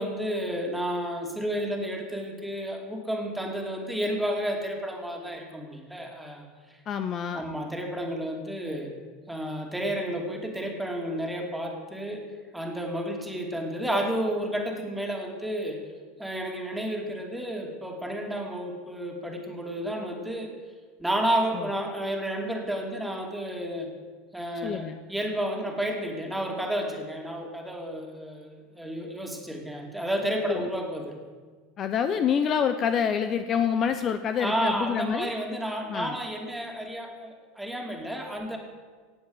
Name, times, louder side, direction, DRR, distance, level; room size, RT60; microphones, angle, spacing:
voice 1, 0.0-6.5 7.3-8.9 9.3-12.3 12.5-15.8 16.2-20.5 21.0-23.9 24.3-31.2 34.4-38.6, right 1 dB, 5° right, 2 dB, 2.8 m, -31 dB
voice 2, 6.9-7.4 21.5-21.7 24.6-25.0 30.5-30.6 31.8-35.3 35.9-36.2, left 7 dB, 40° left, 9 dB, 0.9 m, -27 dB
18.0 x 7.8 x 8.0 m, 1.6 s
supercardioid pair, 115°, 0 cm